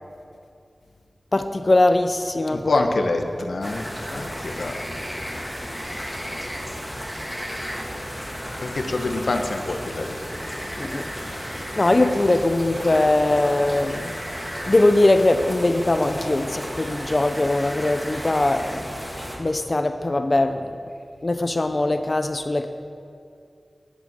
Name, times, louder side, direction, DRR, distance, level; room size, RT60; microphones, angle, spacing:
voice 1, 1.3-2.9 4.1-4.3 10.8-11.0 11.3-14.1 14.7-18.8 19.4-20.8 21.2-22.7, left 2 dB, 45° left, 8 dB, 0.6 m, -21 dB
voice 2, 2.5-3.9 4.1-4.8 5.8-6.3 8.6-10.2, left 3 dB, 80° left, 5 dB, 1.1 m, -26 dB
sound 1, 3.6-19.4, equal, 10° right, 2.9 m, -33 dB
11.0 x 8.3 x 7.4 m, 2.4 s
cardioid pair, 45°, 0 cm